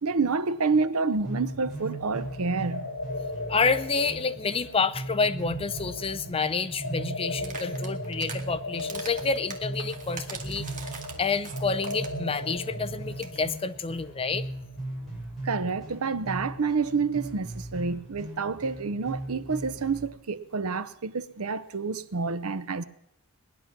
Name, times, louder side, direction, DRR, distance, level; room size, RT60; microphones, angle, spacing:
voice 1, 0.0-2.9 15.4-22.8, right 4 dB, 70° right, 0.7 m, -28 dB
sound 1, 1.2-20.1, right 1 dB, ahead, 7.3 m, -39 dB
sound 2, 1.5-15.1, left 1 dB, 75° left, 6.4 m, -38 dB
voice 2, 3.5-10.7 11.2-14.5, left 4 dB, 25° left, 0.5 m, -28 dB
sound 3, 7.4-8.4 8.8-12.2 12.5-12.6 12.9-13.0 13.1-13.4, right 5 dB, 35° right, 1.7 m, -41 dB
19.0 x 11.0 x 5.9 m
head